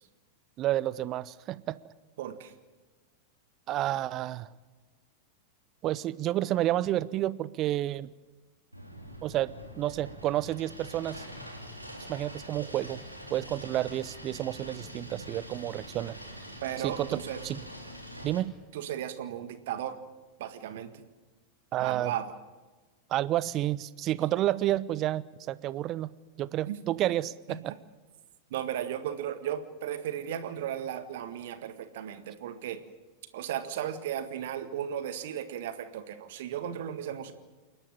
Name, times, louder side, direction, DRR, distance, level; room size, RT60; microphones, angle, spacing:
voice 1, 0.6-1.8 3.7-4.5 5.8-8.1 9.2-11.2 12.1-13.0 13.3-16.2 16.8-17.6 18.2-18.5 21.7-22.1 23.1-26.1 26.4-27.7, right 14 dB, 35° right, 19 dB, 0.7 m, -30 dB
voice 2, 2.2-2.5 16.6-17.4 18.7-20.0 20.4-21.0 21.8-22.3 26.7-26.8 28.5-32.8 33.3-37.3, right 10 dB, 55° right, 10 dB, 1.8 m, -35 dB
sound 1, 8.7-18.4, equal, 90° right, 3.2 m, -44 dB
28.5 x 11.5 x 8.9 m, 1.3 s
figure-of-eight pair, 90°, 0 cm